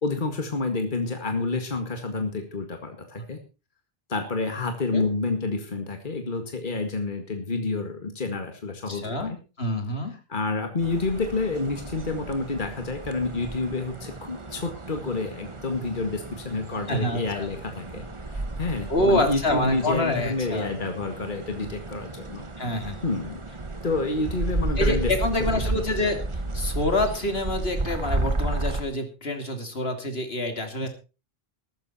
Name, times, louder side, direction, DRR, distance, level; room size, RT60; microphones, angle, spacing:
voice 1, 0.0-3.4 4.1-9.4 10.3-22.5 23.0-23.4 23.8-25.1 25.4-25.7 26.0-26.1 30.8-30.9, left 3 dB, 50° left, 5 dB, 2.1 m, -29 dB
voice 2, 8.9-9.3 9.6-10.1 16.9-17.5 18.9-20.7 22.6-23.0 24.8-26.2 26.5-30.9, left 1 dB, 75° left, 6 dB, 2.8 m, -26 dB
sound 1, 10.8-28.8, right 2 dB, 30° right, 1.3 m, -33 dB
14.0 x 13.0 x 4.3 m, 0.32 s
omnidirectional pair, 1.0 m